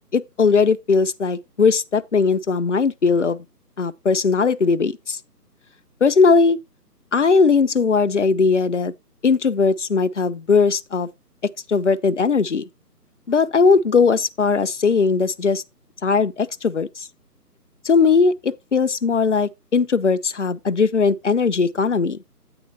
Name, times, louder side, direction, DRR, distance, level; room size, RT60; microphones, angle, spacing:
voice 1, 0.1-3.4 3.8-5.2 6.0-6.6 7.1-8.9 9.2-11.1 11.7-12.6 13.3-15.6 16.0-16.9 17.9-22.2, left 5 dB, 50° left, 0.5 m, -19 dB
8.7 x 8.5 x 2.8 m
figure-of-eight pair, 155°, 48 cm